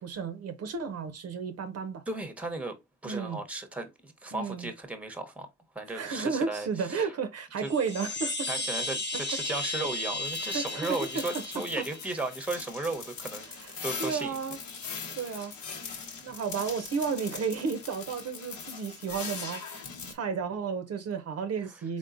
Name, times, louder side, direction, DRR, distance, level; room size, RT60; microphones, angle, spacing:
voice 1, 0.0-2.0 3.0-3.4 4.3-4.7 5.9-8.5 10.5-11.9 13.5-13.7 14.0-14.6 15.1-15.5 16.2-22.0, right 5 dB, 55° right, 0.6 m, -33 dB
voice 2, 2.1-2.7 3.0-5.5 5.7-7.1 7.6-7.7 8.5-13.5 13.8-14.4 15.0-15.2 15.8-16.2, right 2 dB, 5° right, 0.8 m, -35 dB
Chime, 7.6-12.3, left 2 dB, 35° left, 1.1 m, -35 dB
sound 1, 10.2-20.1, left 5 dB, 70° left, 1.1 m, -41 dB
3.7 x 3.6 x 2.5 m
cardioid pair, 90°, 30 cm